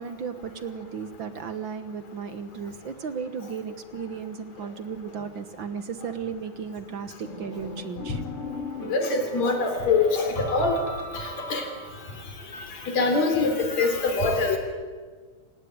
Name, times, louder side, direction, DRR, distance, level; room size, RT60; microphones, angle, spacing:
voice 1, 0.0-8.2, right 6 dB, 55° right, 10 dB, 1.4 m, -35 dB
sound 1, 7.2-12.2, left 2 dB, 45° left, 4.4 m, -37 dB
voice 2, 8.9-10.8 11.1-11.6 12.5-14.6, left 3 dB, 60° left, 5 dB, 5.0 m, -24 dB
27.5 x 17.5 x 9.6 m, 1.5 s
omnidirectional pair, 3.5 m